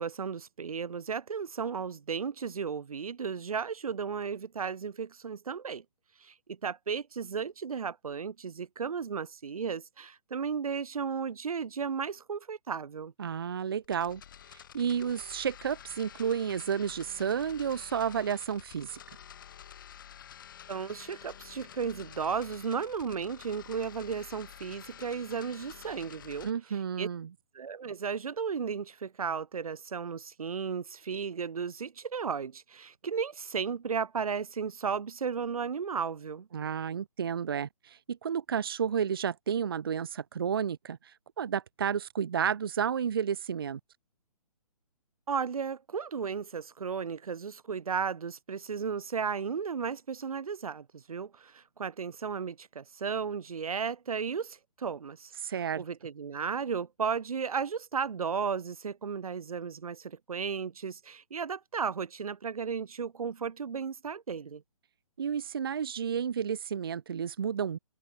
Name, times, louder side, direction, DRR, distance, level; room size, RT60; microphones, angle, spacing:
voice 1, 0.0-5.8 6.2-13.1 20.7-27.1 27.5-36.5 45.3-55.3 55.8-64.6, right 6 dB, 70° right, 1.7 m, -34 dB
voice 2, 13.2-14.2 14.5-19.0 26.4-27.3 36.5-43.8 55.4-55.8 65.2-67.8, right 7 dB, 40° right, 0.5 m, -31 dB
sound 1, 13.8-26.5, left 9 dB, 35° left, 2.6 m, -50 dB
hypercardioid pair, 175°, 19 cm